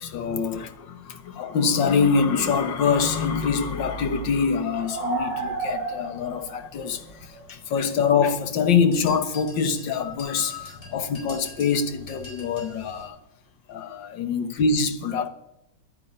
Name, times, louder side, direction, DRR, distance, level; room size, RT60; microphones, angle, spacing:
voice 1, 0.0-13.2 13.7-15.3, left 5 dB, 75° left, 1.8 m, -24 dB
sound 1, 2.7-8.8 9.1-13.0, right 3 dB, 20° left, 6.2 m, -35 dB
sound 2, 8.9-12.8, left 2 dB, 40° left, 4.9 m, -45 dB
10.5 x 9.8 x 9.9 m
omnidirectional pair, 2.0 m